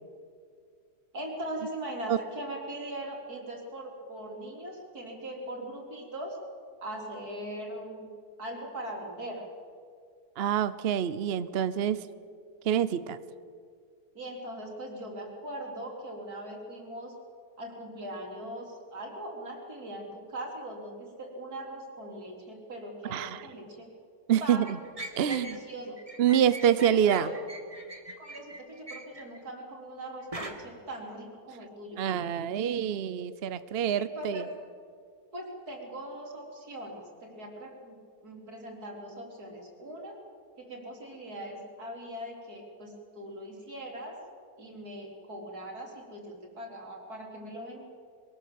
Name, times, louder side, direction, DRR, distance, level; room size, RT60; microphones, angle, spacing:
voice 1, 1.1-6.4 6.8-8.1 8.4-9.5 14.1-17.1 17.6-23.9 24.4-24.7 25.3-26.0 26.3-26.5 26.8-27.3 28.2-32.0 34.0-34.5 35.3-38.0 38.2-40.2 40.6-44.2 44.6-47.8, right 1 dB, 70° right, 1 dB, 4.2 m, -40 dB
voice 2, 10.4-12.0 12.6-13.2 23.1-23.5 24.3-24.8 25.2-25.6 26.2-27.3 32.0-34.5, right 9 dB, 55° right, 14 dB, 0.7 m, -26 dB
sound 1, 24.6-25.6 26.0-29.4 30.3-30.5, right 2 dB, 20° right, 1.8 m, -41 dB
23.5 x 18.5 x 7.6 m, 2.2 s
omnidirectional pair, 1.7 m